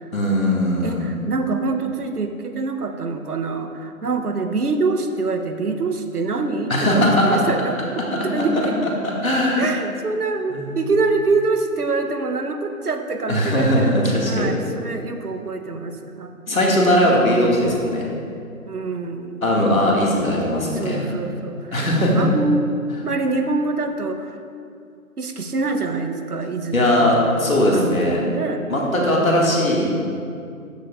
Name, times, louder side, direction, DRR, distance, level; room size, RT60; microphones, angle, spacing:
voice 1, 0.1-1.1 6.7-7.4 8.4-8.5 8.8-9.7 10.5-10.7 13.3-14.5 16.5-18.1 19.4-21.2 21.7-22.3 26.7-28.2 28.7-29.9, left 1 dB, 65° left, -3 dB, 2.1 m, -19 dB
voice 2, 0.8-8.8 9.6-13.9 14.3-16.3 18.6-19.5 20.3-21.6 22.1-22.7 23.0-24.4 25.2-28.7 29.2-29.5, right 3 dB, 85° right, 6 dB, 1.0 m, -25 dB
12.5 x 7.5 x 2.5 m, 2.4 s
figure-of-eight pair, 175°, 45 cm